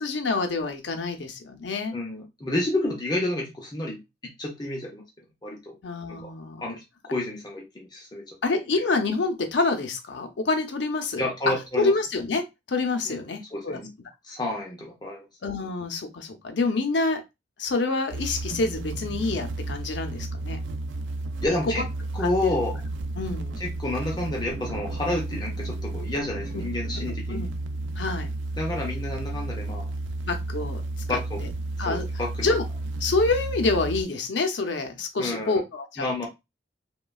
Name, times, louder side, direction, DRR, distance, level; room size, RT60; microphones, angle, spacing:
voice 1, 0.0-1.9 5.8-6.6 8.4-12.4 12.7-13.8 15.4-17.2 17.6-20.6 22.4-22.5 23.2-23.6 26.5-26.6 26.9-27.5 28.0-28.3 30.2-30.8 31.1-31.5 31.8-32.0 32.4-32.6 33.0-36.3, left 3 dB, 70° left, 6 dB, 0.6 m, -27 dB
voice 2, 1.9-5.0 5.4-5.7 6.1-6.3 6.6-6.8 7.1-8.2 11.2-11.9 13.1-13.2 13.5-13.9 14.2-15.3 21.4-21.9 22.1-22.8 23.6-27.5 28.6-29.9 31.1-31.4 31.9-32.5 35.2-35.6 36.0-36.3, left 1 dB, 25° left, 0 dB, 0.6 m, -30 dB
sound 1, 18.1-34.0, right 2 dB, 85° right, 0.4 m, -32 dB
3.0 x 2.2 x 2.3 m, 0.22 s
head